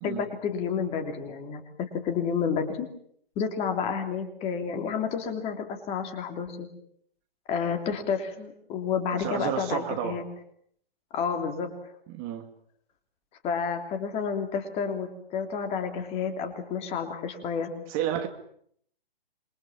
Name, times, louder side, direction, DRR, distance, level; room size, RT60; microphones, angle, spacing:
voice 1, 0.0-2.9 3.3-6.7 7.5-10.2 11.1-11.7 13.4-17.7, left 6 dB, 20° left, 5 dB, 3.1 m, -30 dB
voice 2, 9.1-10.2 12.1-12.5 17.9-18.3, right 10 dB, 25° right, 6 dB, 2.5 m, -31 dB
27.0 x 23.5 x 7.4 m, 0.66 s
figure-of-eight pair, 135°, 30 cm